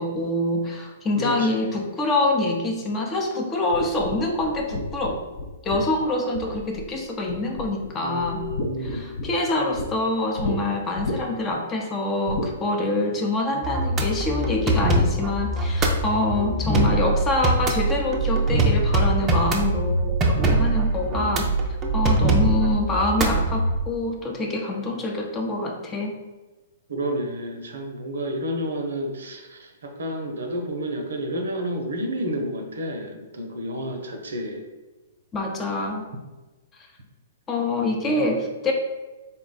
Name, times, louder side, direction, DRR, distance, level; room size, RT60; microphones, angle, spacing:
voice 1, 0.0-5.2 5.6-8.4 8.8-21.5 21.9-26.1 35.3-36.0 37.5-38.7, left 2 dB, 20° left, 1 dB, 0.6 m, -25 dB
voice 2, 1.2-1.8 8.0-9.1 16.3-17.1 21.0-21.4 26.9-34.6 38.0-38.3, equal, 70° right, 4 dB, 0.6 m, -30 dB
sound 1, 3.7-7.0 7.3-7.9 8.2-9.9 10.4-10.6 11.0-11.5 12.3-12.5, left 2 dB, 55° left, 0.6 m, -32 dB
sound 2, 13.6-23.8, right 2 dB, 20° right, 0.5 m, -22 dB
4.0 x 2.2 x 4.0 m, 1.2 s
figure-of-eight pair, 120°, 0 cm